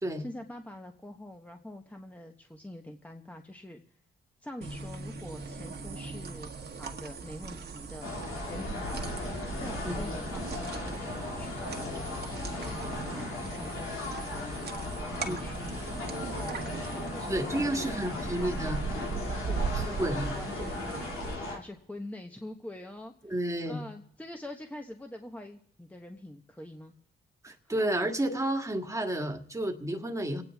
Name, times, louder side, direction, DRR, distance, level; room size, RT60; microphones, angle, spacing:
voice 1, 0.2-3.8 4.4-6.5 6.8-9.2 9.6-19.0 19.5-23.1 23.6-26.9 27.5-27.7, left 1 dB, 5° left, 4 dB, 1.2 m, -45 dB
sound 1, 4.6-21.4, right 5 dB, 55° right, 1.6 m, -39 dB
sound 2, 8.0-21.6, left 3 dB, 80° left, 2.4 m, -37 dB
voice 2, 17.3-18.8 19.7-20.4 23.2-23.8 27.4-30.4, right 1 dB, 15° right, 3 dB, 1.7 m, -31 dB
28.0 x 9.4 x 3.5 m, 0.68 s
cardioid pair, 65°, 21 cm